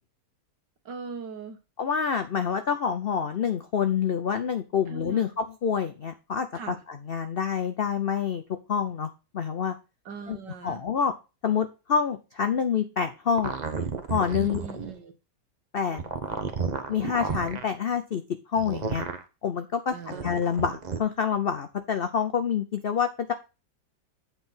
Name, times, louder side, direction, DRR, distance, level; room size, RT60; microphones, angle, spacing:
voice 1, 0.9-1.6 4.9-5.3 6.5-6.8 10.1-10.8 14.4-15.1 19.9-20.4, right 5 dB, 80° right, 6 dB, 2.1 m, -40 dB
voice 2, 1.8-8.4 8.7-9.7 10.3-10.4 10.6-11.1 11.4-13.5 14.1-14.6 15.7-16.0 16.9-18.2 18.5-19.1 19.4-23.3, left 7 dB, 80° left, 9 dB, 0.5 m, -27 dB
sound 1, 13.4-14.9 15.9-17.6 18.6-19.2 20.0-21.0, right 5 dB, 35° right, 0.7 m, -32 dB
8.1 x 4.6 x 5.5 m, 0.29 s
omnidirectional pair, 1.9 m